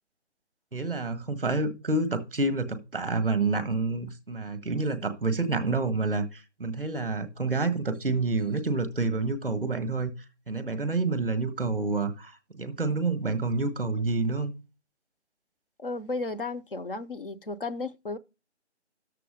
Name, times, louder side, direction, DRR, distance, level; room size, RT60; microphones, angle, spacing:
voice 1, 0.7-10.1 10.5-14.5, right 3 dB, ahead, 0.7 m, -28 dB
voice 2, 15.8-18.2, left 3 dB, 50° left, 0.7 m, -34 dB
11.5 x 6.8 x 5.1 m
figure-of-eight pair, 155°, 35 cm